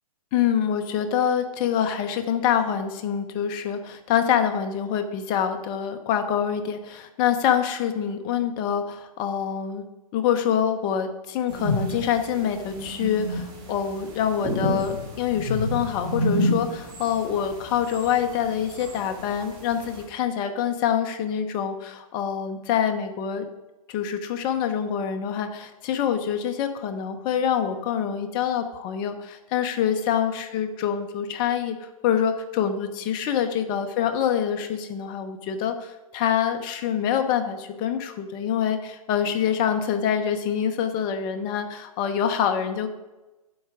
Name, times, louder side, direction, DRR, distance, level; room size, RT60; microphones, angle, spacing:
voice 1, 0.3-9.8 10.1-23.4 23.9-31.8 32.0-42.9, left 8 dB, 25° left, 7 dB, 0.9 m, -25 dB
sound 1, 11.5-20.0, left 1 dB, 25° right, 2.2 m, -30 dB
9.3 x 8.0 x 4.9 m, 1.1 s
hypercardioid pair, 150°, 19 cm